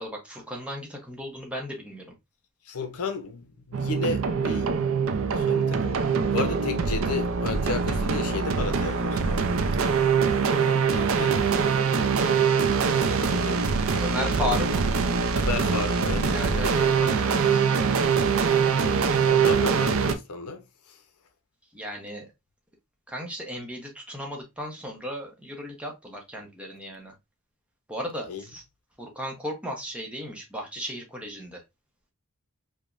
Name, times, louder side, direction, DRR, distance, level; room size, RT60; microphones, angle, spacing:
voice 1, 0.0-2.1 14.0-14.9 16.3-17.7 21.7-22.3 23.1-27.2 27.9-28.6 29.0-31.6, equal, 5° right, 0.7 m, -35 dB
voice 2, 2.7-4.7 5.3-9.4 10.4-11.7 13.3-13.6 13.9-14.5 15.3-16.9 19.3-21.0 28.3-28.4, left 4 dB, 85° left, 0.6 m, -33 dB
sound 1, 3.7-20.1, right 5 dB, 65° right, 0.4 m, -23 dB
4.8 x 2.1 x 2.4 m
head